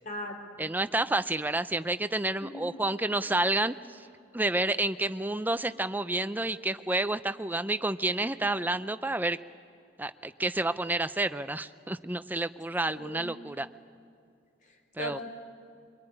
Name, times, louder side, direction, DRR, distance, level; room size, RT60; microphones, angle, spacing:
voice 1, 0.0-0.7 2.4-2.5 12.9-13.3 15.0-15.2, equal, 40° left, 4 dB, 3.8 m, -38 dB
voice 2, 0.6-4.1 4.3-9.4 10.0-13.7 15.0-15.2, right 2 dB, 10° right, 12 dB, 0.6 m, -29 dB
24.0 x 23.5 x 10.0 m, 2.5 s
head